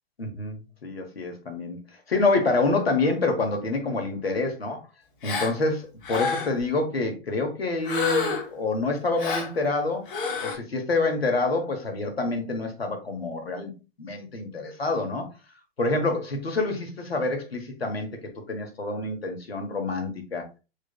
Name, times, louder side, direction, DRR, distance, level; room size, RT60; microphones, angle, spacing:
voice 1, 0.2-1.8 2.1-4.8 5.2-10.1 10.4-13.7 14.0-15.3 15.8-18.1 18.5-20.4, left 3 dB, 85° left, 1.0 m, -27 dB
Gasp, 5.2-5.5 6.0-6.6 7.8-8.6 9.2-9.5 10.1-10.5, left 5 dB, 60° left, 1.1 m, -28 dB
3.3 x 3.2 x 2.2 m
figure-of-eight pair, 115°, 30 cm